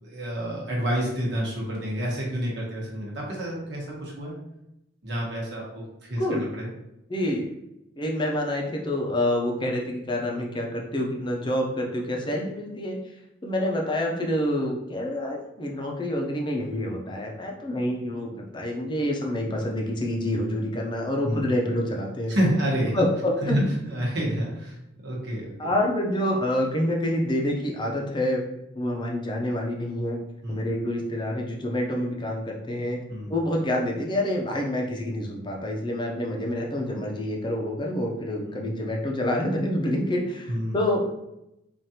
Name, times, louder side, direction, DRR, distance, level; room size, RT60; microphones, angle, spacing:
voice 1, 0.0-4.4 5.0-6.7 21.2-21.5 22.3-22.9 23.4-24.8 25.0-25.7 30.4-30.7 33.1-33.3 38.5-38.6 40.5-40.7, equal, 65° right, -3 dB, 1.2 m, -29 dB
voice 2, 6.2-6.5 7.1-7.5 8.0-13.0 13.4-22.3 22.9-23.6 25.6-28.4 28.7-30.2 30.5-33.0 33.3-41.1, left 1 dB, 25° left, 0 dB, 0.6 m, -27 dB
4.9 x 2.5 x 2.9 m, 0.86 s
head